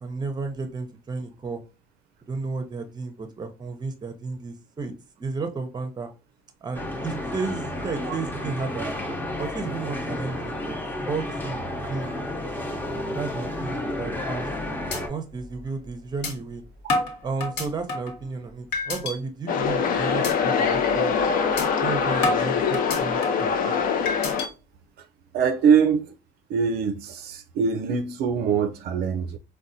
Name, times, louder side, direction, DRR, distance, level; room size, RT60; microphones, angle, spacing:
voice 1, 0.0-1.6 2.3-6.1 6.6-8.9 9.4-10.7 11.1-11.6 11.9-12.2 13.1-14.5 15.1-16.6 17.2-21.3 21.8-23.8, right 4 dB, 25° right, 0.6 m, -33 dB
sound 1, 6.7-15.1, left 1 dB, 10° left, 0.7 m, -31 dB
sound 2, 14.9-15.0 15.4-15.5 16.2-16.3 16.9-18.2 18.7-19.2 19.6-19.8 20.2-20.3 20.7-20.9 21.6-21.7 22.2-23.5 24.1-24.5, left 2 dB, 75° left, 1.1 m, -28 dB
sound 3, 19.5-24.5, left 6 dB, 55° left, 0.5 m, -23 dB
voice 2, 25.3-26.1 26.5-29.4, right 6 dB, 70° right, 0.4 m, -23 dB
3.9 x 2.1 x 2.6 m
cardioid pair, 110°, 17 cm